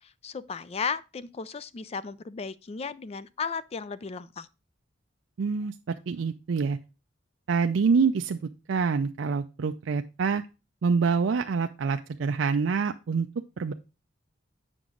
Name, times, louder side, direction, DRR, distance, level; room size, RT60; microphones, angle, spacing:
voice 1, 0.0-4.5, left 5 dB, 30° left, 0.4 m, -35 dB
voice 2, 5.4-6.8 7.5-8.4 8.7-10.4 10.8-13.3 13.6-13.7, right 5 dB, 75° right, 0.4 m, -26 dB
7.5 x 6.0 x 3.7 m
head